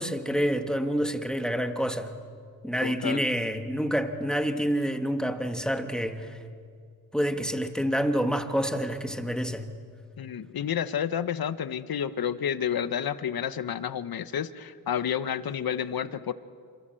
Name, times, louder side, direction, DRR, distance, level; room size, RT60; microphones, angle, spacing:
voice 1, 0.0-2.1 2.6-6.4 7.1-9.7, equal, ahead, 6 dB, 1.5 m, -28 dB
voice 2, 2.8-3.3 10.2-16.3, left 8 dB, 75° left, 13 dB, 1.0 m, -30 dB
28.0 x 27.0 x 7.7 m, 2.3 s
wide cardioid pair, 125°, 36 cm